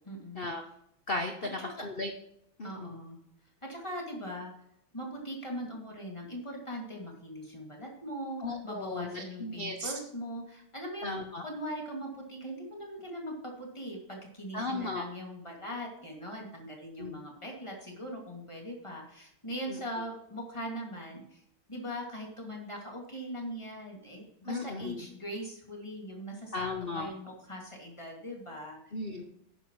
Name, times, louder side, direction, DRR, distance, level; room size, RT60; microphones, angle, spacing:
voice 1, 0.0-0.4 1.6-1.9 2.6-3.2 3.7-4.5 4.9-11.1 11.4-21.4 21.7-28.8, equal, 15° left, -1 dB, 2.3 m, -40 dB
voice 2, 1.1-2.1 2.6-3.0 8.4-9.9 11.0-11.4 14.5-15.0 17.0-17.2 19.7-19.8 24.4-25.0 26.5-27.1 28.9-29.2, left 2 dB, 85° left, 5 dB, 0.5 m, -36 dB
11.5 x 9.7 x 3.2 m, 0.74 s
omnidirectional pair, 2.4 m